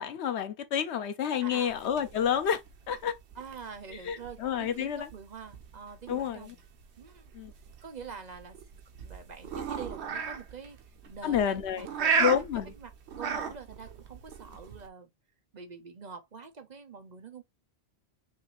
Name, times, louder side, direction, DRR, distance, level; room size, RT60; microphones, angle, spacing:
voice 1, 0.0-2.6 2.9-3.1 4.0-5.1 6.1-6.5 7.3-7.5 11.2-11.9 12.2-12.7, left 8 dB, 90° left, 1.0 m, -29 dB
voice 2, 1.4-1.8 3.3-6.6 7.0-7.3 7.8-8.6 9.0-15.1 15.5-17.4, right 5 dB, 45° right, 0.8 m, -45 dB
sound 1, 1.7-14.9, right 5 dB, 85° right, 1.0 m, -36 dB
5.7 x 2.6 x 3.0 m
omnidirectional pair, 1.1 m